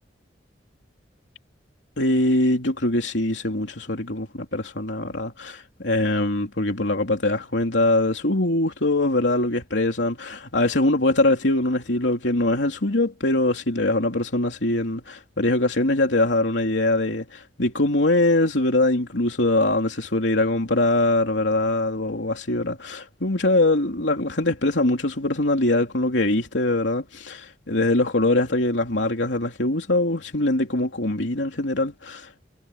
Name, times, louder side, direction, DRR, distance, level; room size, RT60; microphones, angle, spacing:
voice 1, 2.0-32.5, left 2 dB, 85° left, 3.1 m, -22 dB
head